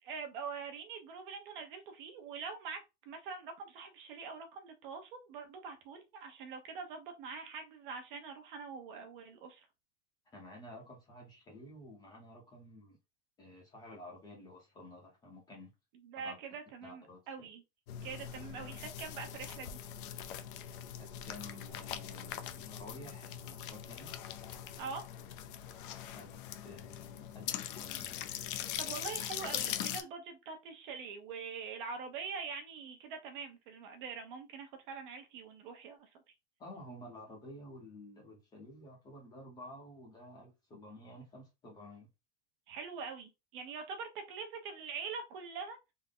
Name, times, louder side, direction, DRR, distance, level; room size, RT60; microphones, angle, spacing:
voice 1, 0.0-2.8 3.1-9.7 16.0-17.6 18.0-19.8 24.8-25.0 28.8-36.1 42.7-45.8, right 5 dB, 50° right, 0.9 m, -44 dB
voice 2, 10.3-13.0 13.4-15.7 16.2-16.4 16.8-17.5 20.9-24.1 26.1-28.2 36.6-42.1, left 1 dB, 10° left, 0.7 m, -52 dB
sound 1, 17.9-30.0, left 10 dB, 50° left, 0.5 m, -42 dB
3.6 x 2.0 x 3.7 m
supercardioid pair, 180°, 34 cm